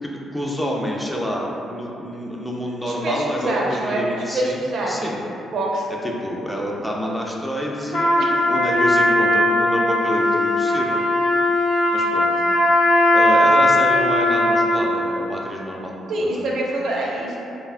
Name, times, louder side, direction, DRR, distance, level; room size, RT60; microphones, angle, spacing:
voice 1, 0.0-4.6 4.9-5.3 6.0-8.2 8.5-11.0 11.9-12.3 13.1-16.6, equal, 10° left, -2 dB, 0.3 m, -28 dB
voice 2, 2.9-4.1 4.3-5.1 5.5-5.9 8.2-8.3 16.1-17.4, right 1 dB, 65° right, -3 dB, 0.4 m, -25 dB
Trumpet, 7.9-14.9, left 1 dB, 65° left, 0.6 m, -18 dB
2.7 x 2.2 x 2.4 m, 2.7 s
cardioid pair, 90°, 0 cm